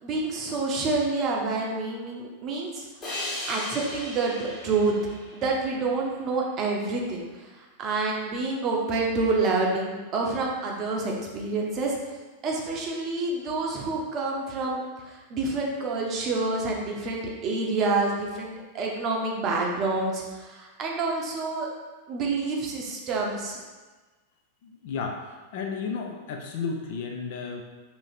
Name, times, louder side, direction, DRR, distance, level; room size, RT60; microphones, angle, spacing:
voice 1, 0.0-2.8 3.5-4.9 5.3-7.3 7.6-12.0 12.4-21.7 22.1-23.6, right 3 dB, 35° right, -1 dB, 0.7 m, -28 dB
sound 1, 3.0-6.3, left 1 dB, 30° left, 1.3 m, -37 dB
voice 2, 24.6-27.6, left 5 dB, 50° left, 2 dB, 0.4 m, -33 dB
2.8 x 2.8 x 4.2 m, 1.3 s
figure-of-eight pair, 90°, 0 cm